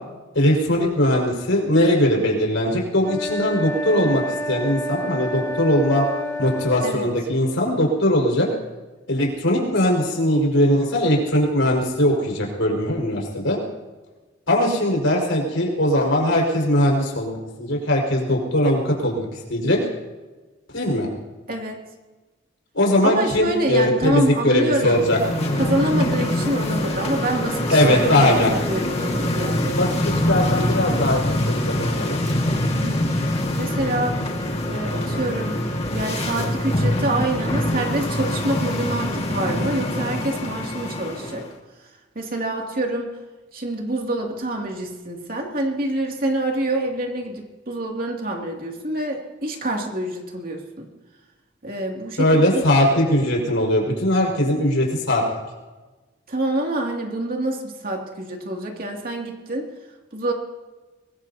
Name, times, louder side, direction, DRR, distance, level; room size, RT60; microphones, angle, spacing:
voice 1, 0.4-4.2 4.5-6.0 6.4-8.5 9.1-13.6 14.5-19.8 20.7-21.1 22.7-25.2 27.7-28.5 29.7-32.2 52.2-55.2, left 1 dB, 90° left, -1 dB, 5.3 m, -20 dB
sound 1, 3.0-7.0, equal, 15° left, 2.5 m, -29 dB
voice 2, 21.5-21.8 23.0-25.0 25.6-29.8 32.7-33.0 33.6-34.2 34.6-35.6 35.9-41.4 42.1-43.1 43.5-50.9 51.6-52.6 56.3-59.7 60.1-60.3, right 1 dB, 45° right, 1 dB, 2.6 m, -26 dB
sound 2, 24.9-41.5, left 1 dB, 30° left, 1.9 m, -24 dB
23.5 x 21.5 x 2.9 m, 1.2 s
head